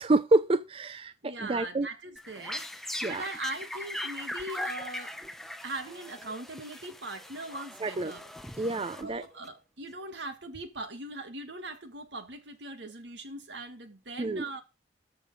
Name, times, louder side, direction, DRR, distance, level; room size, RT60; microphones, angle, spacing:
voice 1, 0.0-1.9 3.0-3.2 7.8-8.1 8.6-9.2 14.2-14.4, right 2 dB, 30° right, 0.5 m, -27 dB
voice 2, 1.2-2.7 3.1-5.2 5.6-8.3 9.0-14.6, right 2 dB, 80° right, 2.0 m, -40 dB
sound 1, 2.2-9.5, left 1 dB, ahead, 0.9 m, -40 dB
14.0 x 5.1 x 5.5 m
head